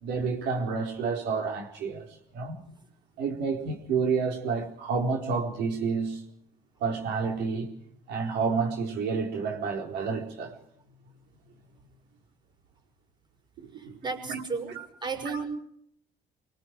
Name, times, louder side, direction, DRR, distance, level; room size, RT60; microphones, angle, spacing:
voice 1, 0.0-2.1 2.3-2.6 3.2-6.2 6.8-7.7 8.1-10.6 13.6-14.0 14.3-14.4 14.7-14.9 15.2-15.4, right 5 dB, 80° right, 4.3 m, -29 dB
voice 2, 13.8-15.5, right 4 dB, 25° right, 5.7 m, -34 dB
25.5 x 24.5 x 4.7 m
cardioid pair, 110°, 17 cm